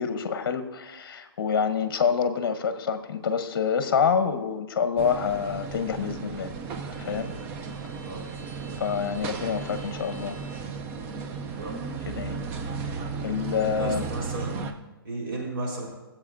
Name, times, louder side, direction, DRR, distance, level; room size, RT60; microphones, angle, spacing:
voice 1, 0.0-6.5 7.0-7.3 8.8-10.4 12.1-12.4 13.2-14.0, left 6 dB, 55° left, 10 dB, 0.8 m, -27 dB
sound 1, 5.0-14.7, right 5 dB, 15° right, 0.4 m, -35 dB
voice 2, 13.6-14.7 15.0-15.9, right 2 dB, 65° right, -2 dB, 4.0 m, -34 dB
17.5 x 7.5 x 2.6 m, 1.1 s
hypercardioid pair, 155°, 13 cm